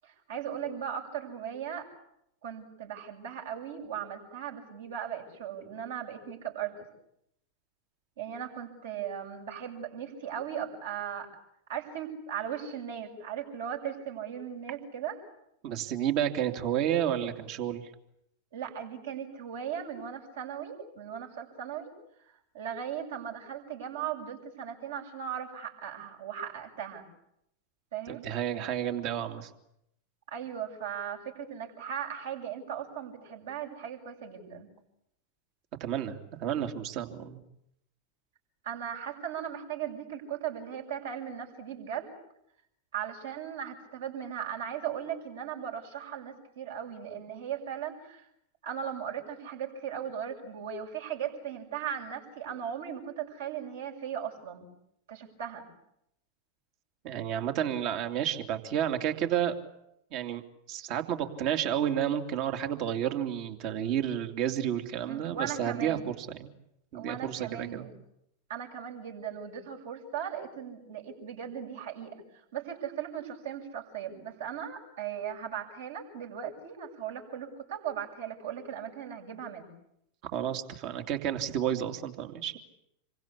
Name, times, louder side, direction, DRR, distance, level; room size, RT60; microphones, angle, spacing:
voice 1, 0.0-1.9 2.4-6.8 8.2-11.3 11.7-15.2 18.5-21.9 22.3-27.0 27.9-28.2 30.3-34.7 38.6-42.1 42.9-48.3 48.6-54.7 55.1-55.6 65.1-66.1 66.9-67.9 68.5-79.7, right 9 dB, 60° right, 1 dB, 7.1 m, -38 dB
voice 2, 15.6-17.8 28.1-29.5 35.8-37.4 57.0-59.6 60.1-60.4 60.7-66.5 66.9-67.9 80.3-82.6, right 10 dB, 45° right, 6 dB, 2.8 m, -31 dB
28.0 x 23.5 x 8.6 m, 0.79 s
figure-of-eight pair, 90°, 0 cm